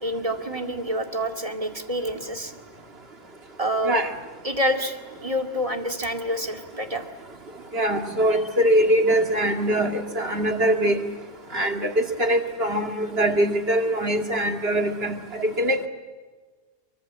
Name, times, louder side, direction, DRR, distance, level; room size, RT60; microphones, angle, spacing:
voice 1, 0.0-2.5 3.6-4.0 4.4-7.1, equal, 30° right, 5 dB, 2.3 m, -27 dB
voice 2, 7.7-11.0 11.5-15.9, right 1 dB, 55° right, 5 dB, 2.6 m, -22 dB
28.5 x 24.0 x 7.6 m, 1.4 s
omnidirectional pair, 1.3 m